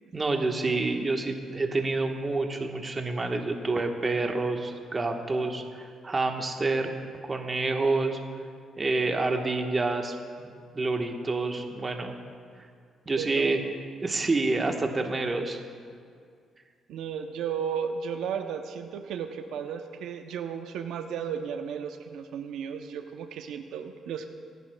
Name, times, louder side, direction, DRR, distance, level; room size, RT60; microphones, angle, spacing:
voice 1, 0.1-5.6 6.0-6.9 7.2-8.2 8.8-12.1 13.1-13.6 14.0-15.6, right 3 dB, 30° right, 3 dB, 1.2 m, -28 dB
voice 2, 13.2-13.7 16.9-24.3, right 7 dB, 85° right, 6 dB, 0.6 m, -34 dB
25.0 x 11.0 x 2.2 m, 2.2 s
cardioid pair, 100°, 0 cm